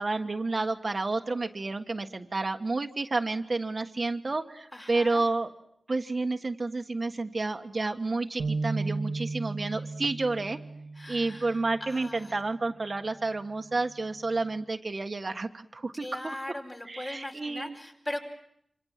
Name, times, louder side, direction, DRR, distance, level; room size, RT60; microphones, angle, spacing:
voice 1, 0.0-5.5 5.9-10.6 11.1-16.3 16.8-17.8, right 3 dB, 45° right, 5 dB, 1.5 m, -30 dB
voice 2, 4.7-5.3 10.9-12.4 16.0-18.2, left 1 dB, 30° left, 1 dB, 5.0 m, -39 dB
sound 1, 8.4-11.9, right 3 dB, 85° right, 1.6 m, -34 dB
27.0 x 26.5 x 7.5 m, 0.73 s
wide cardioid pair, 85°, 0 cm